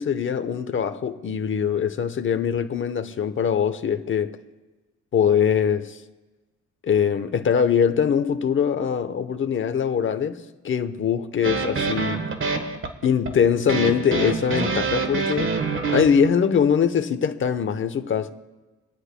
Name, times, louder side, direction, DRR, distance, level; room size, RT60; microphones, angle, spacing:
voice 1, 0.0-4.3 5.1-6.0 6.8-12.2 13.0-15.5 15.9-18.3, left 7 dB, 40° left, 0.9 m, -22 dB
sound 1, 11.4-16.3, right 4 dB, 45° right, 1.3 m, -26 dB
28.0 x 9.8 x 2.2 m
cardioid pair, 90°, 30 cm